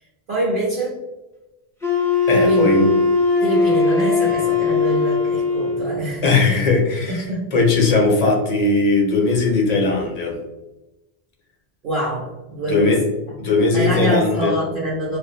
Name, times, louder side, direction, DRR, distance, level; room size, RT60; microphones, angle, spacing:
voice 1, 0.3-1.0 2.4-2.7 3.4-6.6 7.0-7.5 11.8-12.9 13.7-15.2, right 1 dB, 60° right, -5 dB, 0.8 m, -25 dB
Wind instrument woodwind instrument, 1.8-5.9, left 4 dB, 5° left, 0.5 m, -19 dB
voice 2, 2.3-2.9 6.2-10.4 12.7-13.0 13.4-14.5, left 3 dB, 45° left, 0 dB, 0.6 m, -18 dB
2.5 x 2.1 x 2.6 m, 1.0 s
omnidirectional pair, 1.0 m